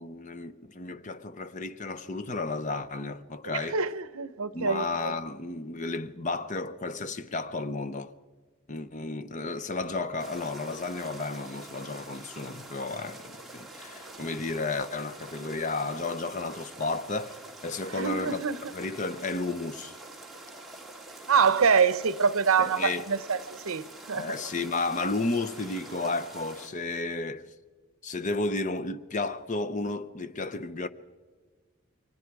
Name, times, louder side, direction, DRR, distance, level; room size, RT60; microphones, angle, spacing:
voice 1, 0.0-3.8 4.5-8.1 8.7-18.4 18.7-19.9 22.6-23.1 24.1-27.4 28.0-30.9, left 3 dB, 35° left, 0.7 m, -33 dB
voice 2, 3.4-5.1 17.9-18.6 21.3-24.3, right 6 dB, 75° right, 0.8 m, -25 dB
sound 1, 10.2-26.7, right 2 dB, ahead, 2.3 m, -46 dB
29.5 x 23.0 x 4.8 m
head